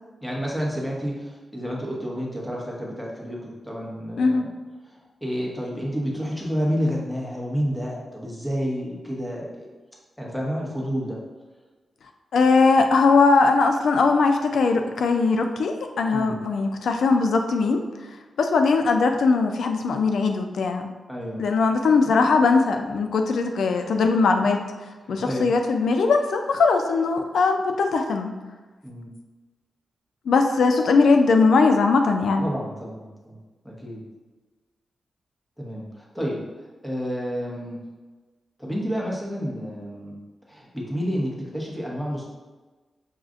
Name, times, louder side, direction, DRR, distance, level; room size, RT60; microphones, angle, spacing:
voice 1, 0.2-4.5 4.9-9.7 10.2-11.2 16.1-16.4 21.1-21.4 23.8-24.0 25.0-25.5 28.8-29.1 32.4-33.4 33.6-34.0 35.6-36.4 36.8-37.8 38.6-40.2 40.5-42.2, equal, 5° left, -3 dB, 0.9 m, -30 dB
voice 2, 12.3-17.8 18.4-20.9 21.4-24.6 25.1-28.3 30.3-32.4, left 4 dB, 90° left, 5 dB, 0.3 m, -20 dB
6.2 x 2.4 x 2.5 m, 1.3 s
wide cardioid pair, 120°, 0 cm